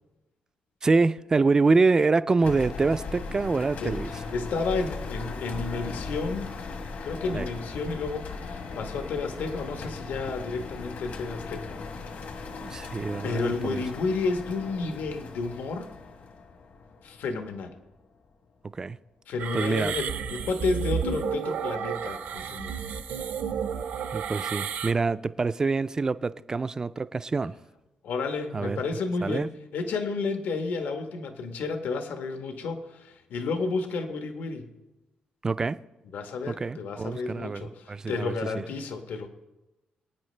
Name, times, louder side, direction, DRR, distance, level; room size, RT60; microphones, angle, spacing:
voice 1, 0.8-4.1 7.3-7.5 12.6-13.8 18.7-19.0 19.5-19.9 24.1-27.6 28.5-28.8 29.2-29.5 35.4-35.8 36.5-38.6, right 3 dB, 20° right, 0.3 m, -26 dB
sound 1, 2.4-17.8, left 4 dB, 60° left, 1.1 m, -38 dB
voice 2, 3.8-6.5 7.0-11.7 12.8-13.0 13.2-15.9 17.0-17.7 19.3-22.7 28.0-29.5 29.7-34.7 36.1-39.3, left 4 dB, 80° left, 1.2 m, -31 dB
sound 2, 19.4-24.9, right 7 dB, 70° right, 0.7 m, -32 dB
24.0 x 9.4 x 3.3 m
cardioid pair, 160°, 3 cm